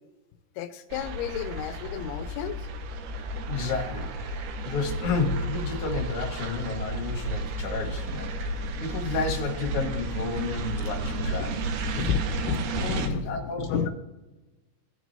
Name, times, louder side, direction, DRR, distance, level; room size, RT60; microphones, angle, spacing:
voice 1, 0.6-2.6 9.0-9.2 11.3-11.6 11.8-13.9, left 8 dB, 90° left, 10 dB, 2.6 m, -32 dB
sound 1, 0.9-13.1, right 2 dB, 75° right, 1.9 m, -32 dB
voice 2, 3.5-4.1 4.6-11.8 12.8-13.9, left 4 dB, 55° left, 1 dB, 1.6 m, -31 dB
16.0 x 6.1 x 2.7 m, 1.1 s
omnidirectional pair, 4.5 m